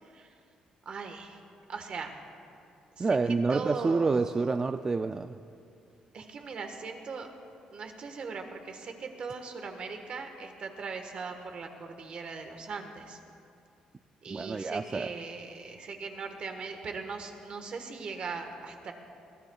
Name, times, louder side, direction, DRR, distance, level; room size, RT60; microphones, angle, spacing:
voice 1, 0.8-1.4 1.7-2.1 3.0-3.2 3.5-4.2 6.1-7.3 7.7-13.2 14.2-18.9, right 4 dB, 50° right, 5 dB, 1.4 m, -39 dB
voice 2, 3.0-5.3 14.3-15.1, right 4 dB, 25° right, 8 dB, 0.3 m, -28 dB
22.0 x 16.0 x 2.4 m, 2.5 s
cardioid pair, 110°, 2 cm